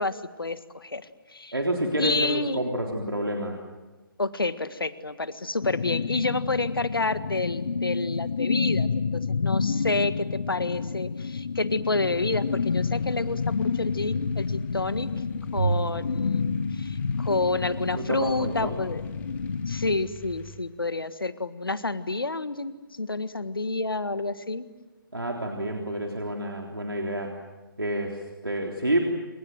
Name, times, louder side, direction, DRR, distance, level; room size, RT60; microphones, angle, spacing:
voice 1, 0.0-1.5 2.0-2.6 4.2-8.9 9.1-15.1 15.5-19.0 19.7-24.7, left 3 dB, 80° left, 13 dB, 1.7 m, -29 dB
voice 2, 1.5-3.6 17.9-18.8 25.1-27.4 27.8-29.1, right 1 dB, 85° right, 1 dB, 3.7 m, -29 dB
sound 1, 5.6-20.0, left 5 dB, 60° left, 1.2 m, -29 dB
sound 2, 12.0-20.6, left 1 dB, 15° left, 2.2 m, -48 dB
Bowed string instrument, 15.6-18.0, right 4 dB, 70° right, 0.9 m, -32 dB
28.0 x 26.5 x 7.7 m, 1.2 s
figure-of-eight pair, 140°, 12 cm